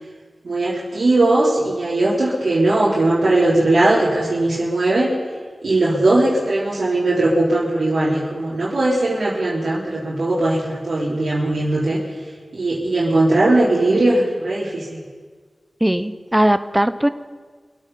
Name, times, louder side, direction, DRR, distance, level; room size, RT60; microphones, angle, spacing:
voice 1, 0.4-5.1 5.6-12.0 12.5-15.1, right 2 dB, 80° right, -8 dB, 3.5 m, -19 dB
voice 2, 15.8-17.1, right 1 dB, 10° right, 12 dB, 0.8 m, -18 dB
25.0 x 8.8 x 5.6 m, 1.5 s
wide cardioid pair, 55°, 0 cm